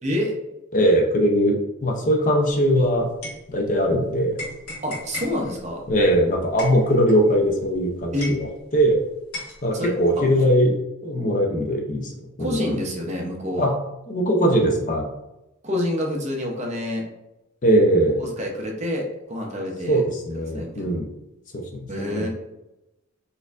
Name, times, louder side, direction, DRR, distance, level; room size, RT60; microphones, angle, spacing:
voice 1, 0.0-0.4 4.8-5.9 8.1-8.3 9.7-10.5 12.4-13.7 15.6-17.1 18.2-20.0 20.6-21.0 21.9-22.3, left 1 dB, 30° right, 0 dB, 0.6 m, -27 dB
voice 2, 0.7-3.1 3.5-4.4 5.9-9.0 9.6-10.8 11.0-12.1 12.4-12.6 13.6-13.7 14.1-15.1 17.6-18.2 19.9-21.1 21.5-22.3, equal, 35° left, 1 dB, 0.5 m, -20 dB
sound 1, 2.7-4.0 4.4-8.9 9.3-10.4, left 2 dB, 90° left, 1.4 m, -37 dB
4.1 x 2.6 x 2.4 m, 0.92 s
head